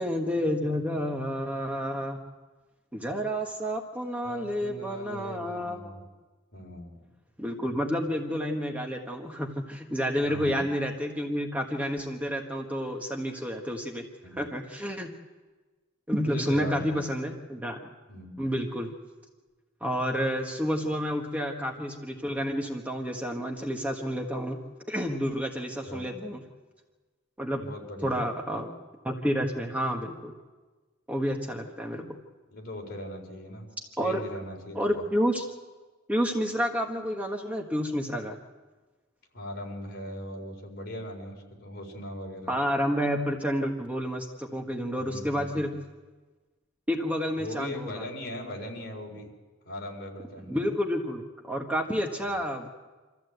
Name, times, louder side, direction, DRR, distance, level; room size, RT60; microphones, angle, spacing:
voice 1, 0.0-2.2 2.9-6.1 7.4-14.1 14.3-15.1 16.1-17.8 18.4-18.9 19.8-24.6 24.9-26.4 27.4-27.6 28.0-28.7 29.0-30.3 31.1-32.2 34.0-34.2 34.7-35.4 36.1-38.4 42.5-45.7 46.9-48.0 50.5-52.8, equal, 10° right, 2 dB, 1.3 m, -30 dB
voice 2, 4.2-6.0 6.5-7.0 10.2-10.6 14.2-14.4 16.2-17.0 18.1-18.4 25.9-26.1 27.6-28.2 32.5-33.7 34.0-35.1 39.3-42.5 45.0-45.6 47.4-49.3 49.6-50.7 52.3-52.4, left 1 dB, 50° left, 0 dB, 4.2 m, -39 dB
25.5 x 14.5 x 8.0 m, 1.3 s
head